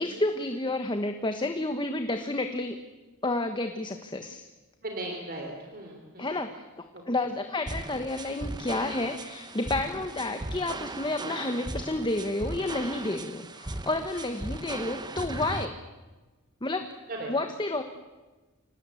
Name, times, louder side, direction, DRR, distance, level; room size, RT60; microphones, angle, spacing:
voice 1, 0.0-2.8 3.2-4.5 6.2-6.6 7.1-15.8 16.6-16.9 17.3-17.8, left 2 dB, 20° left, 7 dB, 1.2 m, -30 dB
voice 2, 4.8-6.3 6.9-7.0 10.1-10.5 17.1-17.3, right 2 dB, 45° right, 1 dB, 3.6 m, -38 dB
sound 1, 7.7-15.7, right 2 dB, 20° right, 1.0 m, -38 dB
26.0 x 18.5 x 8.4 m, 1.2 s
head